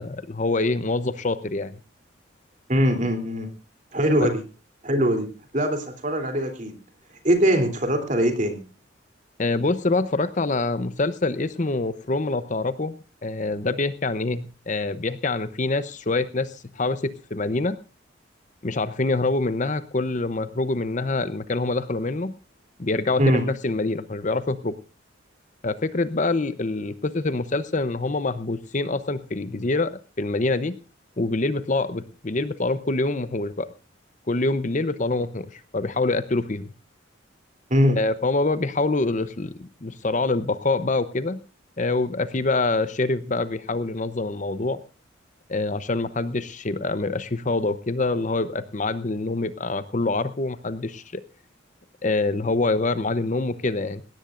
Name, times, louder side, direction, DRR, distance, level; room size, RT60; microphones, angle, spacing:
voice 1, 0.0-1.8 4.2-4.3 9.4-13.0 13.2-17.8 18.6-22.3 22.8-24.7 25.6-29.9 30.2-30.8 31.2-33.7 34.3-36.7 38.0-41.4 41.8-44.8 45.5-51.2 52.0-54.0, left 3 dB, 40° left, 13 dB, 0.8 m, -25 dB
voice 2, 2.7-3.5 3.9-4.4 4.8-5.3 5.5-6.7 7.2-8.6 23.2-23.4 37.7-38.0, equal, 40° right, 5 dB, 3.2 m, -21 dB
19.5 x 17.0 x 2.5 m, 0.33 s
head